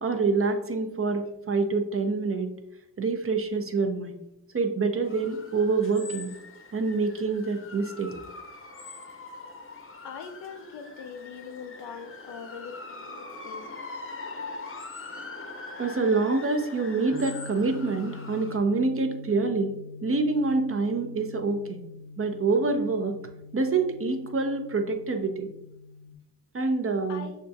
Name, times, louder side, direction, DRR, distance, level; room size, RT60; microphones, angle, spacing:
voice 1, 0.0-2.5 3.0-4.1 4.5-6.3 6.7-8.1 15.8-19.7 20.0-21.8 22.2-23.2 23.5-25.5 26.5-27.3, right 3 dB, 35° right, 6 dB, 0.7 m, -26 dB
sound 1, 5.0-18.6, left 3 dB, 30° left, 0.8 m, -42 dB
voice 2, 10.0-13.8 27.1-27.3, left 6 dB, 90° left, 7 dB, 0.6 m, -42 dB
sound 2, 17.1-26.1, left 3 dB, 50° right, 1.1 m, -44 dB
6.4 x 2.3 x 2.7 m, 0.84 s
cardioid pair, 55°, 40 cm